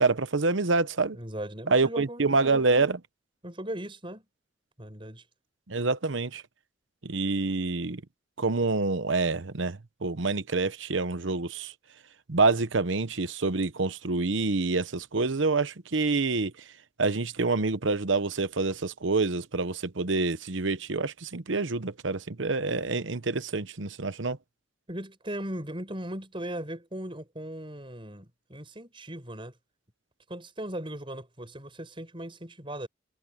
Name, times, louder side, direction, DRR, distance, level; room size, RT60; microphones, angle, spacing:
voice 1, 0.0-1.2 1.7-3.0 5.7-6.4 7.0-8.0 8.4-11.7 12.3-16.5 17.0-24.4, right 3 dB, 75° right, 1.0 m, -27 dB
voice 2, 1.1-2.8 3.4-4.3 4.8-5.2 24.9-29.5 30.3-32.9, right 1 dB, 25° right, 5.8 m, -38 dB
head